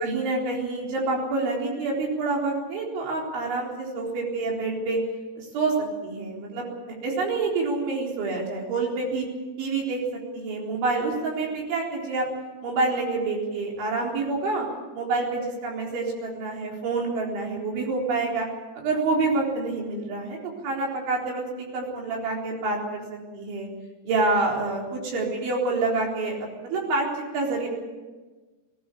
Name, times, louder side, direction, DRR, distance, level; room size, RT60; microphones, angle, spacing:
voice 1, 0.0-5.0 5.4-5.7 6.0-6.7 7.0-9.3 9.6-10.0 10.3-12.3 12.6-14.7 15.0-18.5 18.8-20.4 20.6-23.7 24.1-27.1 27.3-27.7, right 3 dB, 85° right, -1 dB, 6.5 m, -27 dB
21.5 x 18.0 x 8.4 m, 1.3 s
omnidirectional pair, 5.2 m